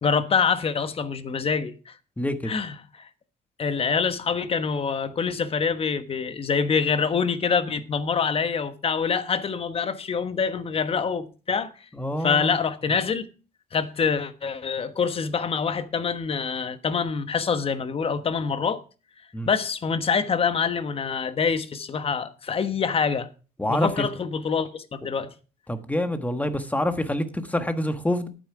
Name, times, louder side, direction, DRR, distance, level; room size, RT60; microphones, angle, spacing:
voice 1, 0.0-1.9 2.4-3.1 3.6-11.7 12.2-13.3 13.7-18.8 19.5-23.3 23.7-25.3, left 6 dB, 35° left, 1.2 m, -25 dB
voice 2, 2.2-2.5 12.0-12.6 19.3-19.5 23.6-24.0 25.7-28.3, left 1 dB, 10° left, 1.4 m, -26 dB
11.5 x 9.2 x 4.8 m
cardioid pair, 110°, 17 cm